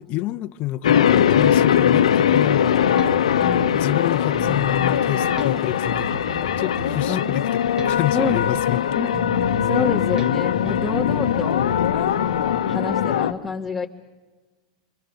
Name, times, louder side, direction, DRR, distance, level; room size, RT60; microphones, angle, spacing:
voice 1, 0.0-3.1 3.7-9.0, left 15 dB, 40° left, 1.1 m, -28 dB
sound 1, 0.8-13.3, left 9 dB, 85° left, 1.1 m, -20 dB
Bass guitar, 2.5-4.0 4.3-8.8 9.1-12.1, right 1 dB, 20° right, 2.4 m, -34 dB
voice 2, 3.4-3.8 7.1-7.2 8.1-8.4 9.0-9.2 9.6-11.6 11.9-13.9, left 4 dB, 5° left, 2.3 m, -28 dB
26.5 x 26.0 x 6.5 m
hypercardioid pair, 130°, 3 cm